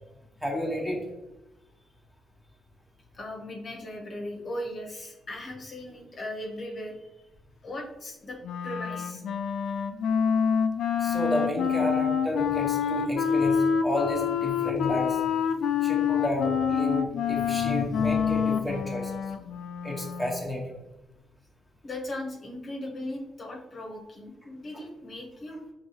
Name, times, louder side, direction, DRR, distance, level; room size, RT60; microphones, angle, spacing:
voice 1, 0.4-1.1 11.0-15.2 15.8-19.1 19.8-20.8, left 1 dB, 5° right, -2 dB, 1.2 m, -31 dB
voice 2, 3.1-7.0 7.6-8.4 8.6-9.2 21.8-25.6, left 1 dB, 40° left, -1 dB, 0.9 m, -38 dB
Wind instrument woodwind instrument, 8.4-20.5, left 7 dB, 70° left, 0.3 m, -27 dB
4.6 x 3.2 x 2.9 m, 0.95 s
cardioid pair, 90°, 0 cm